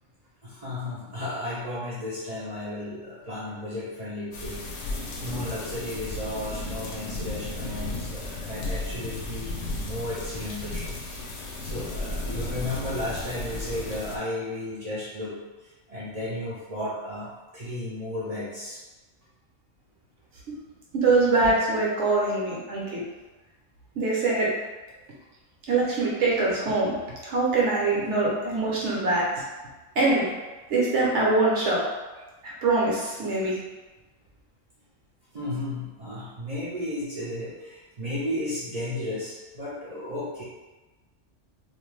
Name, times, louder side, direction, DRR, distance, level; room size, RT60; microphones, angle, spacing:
voice 1, 0.4-11.1 11.6-15.4 15.9-18.8 35.3-40.4, left 1 dB, 50° right, -8 dB, 0.4 m, -34 dB
sound 1, 4.3-14.2, left 2 dB, 70° left, 0.8 m, -34 dB
voice 2, 20.9-23.0 24.0-24.5 25.7-26.9 27.2-29.3 30.0-30.3 30.7-31.8 32.6-33.5, right 3 dB, 70° right, -4 dB, 1.0 m, -23 dB
2.5 x 2.2 x 3.1 m, 1.2 s
omnidirectional pair, 1.3 m